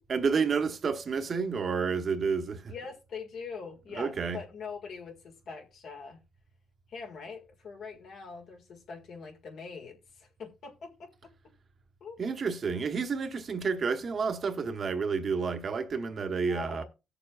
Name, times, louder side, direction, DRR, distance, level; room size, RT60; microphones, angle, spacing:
voice 1, 0.1-2.7 4.0-4.4 12.2-16.8, right 5 dB, 50° right, 0.9 m, -30 dB
voice 2, 2.7-6.2 6.9-11.1 12.0-12.2 16.4-16.8, left 5 dB, 70° left, 1.8 m, -43 dB
17.0 x 6.9 x 2.4 m
cardioid pair, 90°, 0 cm